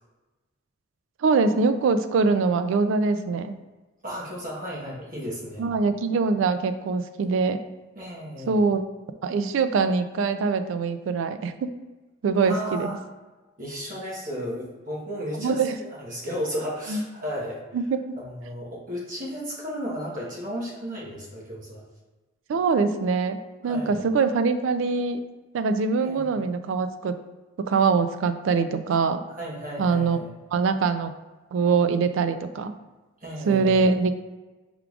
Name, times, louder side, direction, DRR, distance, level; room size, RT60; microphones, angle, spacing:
voice 1, 1.2-3.6 5.6-7.6 8.5-8.8 9.2-11.7 12.2-13.0 15.4-15.8 16.9-17.0 17.7-18.2 22.5-25.2 25.5-27.2 27.6-29.2 29.8-30.2 30.5-31.1 31.5-32.7 33.5-34.1, right 4 dB, 70° right, 10 dB, 0.3 m, -23 dB
voice 2, 4.0-5.6 8.0-8.6 12.4-13.0 13.6-17.6 18.2-21.8 23.6-24.0 26.0-26.3 29.4-30.3 33.2-33.8, equal, 40° right, -4 dB, 1.1 m, -34 dB
4.6 x 3.6 x 2.4 m, 1.2 s
head